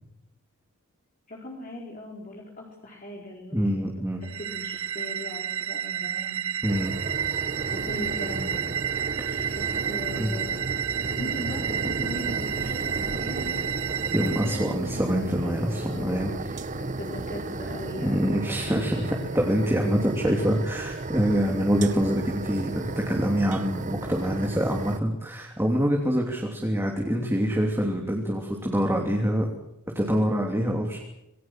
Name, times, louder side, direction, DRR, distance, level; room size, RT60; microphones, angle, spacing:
voice 1, 1.3-4.1 4.3-6.4 7.7-8.6 9.1-9.2 9.6-10.5 11.1-13.6 14.2-18.8, left 1 dB, 35° left, -2 dB, 4.4 m, -39 dB
voice 2, 3.5-4.2 6.6-6.9 9.2-9.5 10.2-10.3 14.1-16.5 18.0-29.5 29.9-31.0, equal, 10° right, 1 dB, 3.1 m, -25 dB
sound 1, 4.2-14.7, right 9 dB, 70° right, 1.0 m, -31 dB
sound 2, 6.7-25.0, right 2 dB, 35° right, 0.9 m, -34 dB
27.0 x 20.5 x 7.7 m, 0.87 s
head